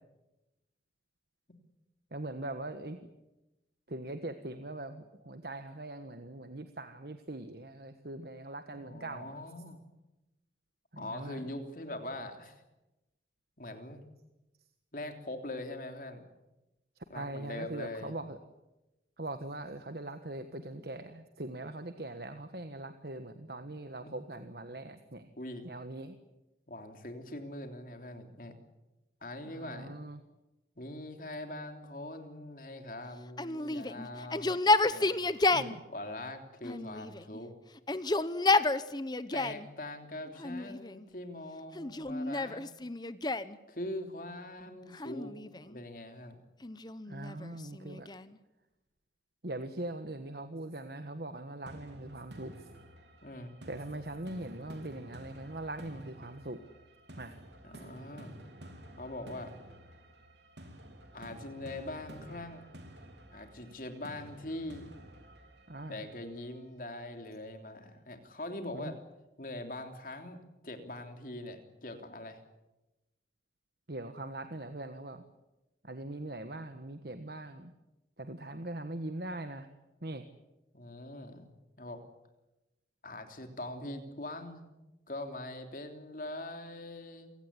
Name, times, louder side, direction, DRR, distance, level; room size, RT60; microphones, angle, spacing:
voice 1, 2.1-3.0 3.9-9.4 10.9-11.5 17.0-18.4 19.2-25.3 25.6-26.2 29.4-30.2 35.5-35.8 47.0-48.1 49.4-52.7 53.7-56.6 57.2-57.3 65.7-66.0 68.7-68.9 73.9-75.2 75.8-77.7 78.2-79.7 80.0-80.3, right 2 dB, 60° right, 8 dB, 1.4 m, -41 dB
voice 2, 8.7-9.8 11.0-12.6 13.6-14.0 14.9-16.2 17.1-18.1 24.0-24.2 25.4-25.6 26.7-28.5 29.2-30.0 30.7-34.6 34.9-35.2 35.9-37.5 39.3-42.7 43.7-45.4 45.6-46.4 53.2-53.5 57.6-58.4 59.0-59.5 61.1-62.7 63.3-64.9 65.9-69.0 69.4-72.4 80.7-82.0 83.0-84.7 85.1-87.3, left 1 dB, 50° left, 6 dB, 3.3 m, -42 dB
Yell, 33.4-35.8 36.6-37.4 37.8-39.7 40.4-41.1 41.8-43.6 44.9-45.8 46.6-48.4, left 2 dB, 25° left, 0.8 m, -31 dB
sound 1, 51.7-66.6, right 1 dB, 80° right, 3.7 m, -52 dB
27.5 x 17.5 x 9.8 m, 0.99 s
head